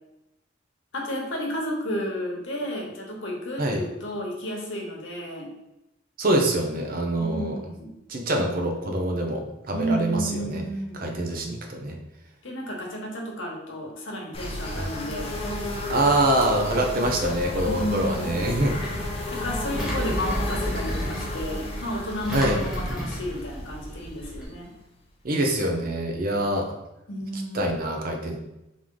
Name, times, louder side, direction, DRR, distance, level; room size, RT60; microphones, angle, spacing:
voice 1, 0.9-5.5 7.2-7.9 9.7-11.1 12.4-15.3 17.6-18.5 19.3-24.7 27.1-27.8, equal, 80° left, -1 dB, 1.1 m, -32 dB
voice 2, 6.2-7.6 8.1-10.6 10.9-12.0 14.8-14.9 15.9-18.8 22.3-22.6 25.2-26.7 27.3-28.4, right 1 dB, 50° right, 2 dB, 0.7 m, -25 dB
sound 1, 14.3-25.0, left 1 dB, 30° left, 0.7 m, -33 dB
Engine, 18.3-24.4, equal, 5° right, 0.9 m, -33 dB
3.6 x 3.2 x 3.8 m, 0.92 s
head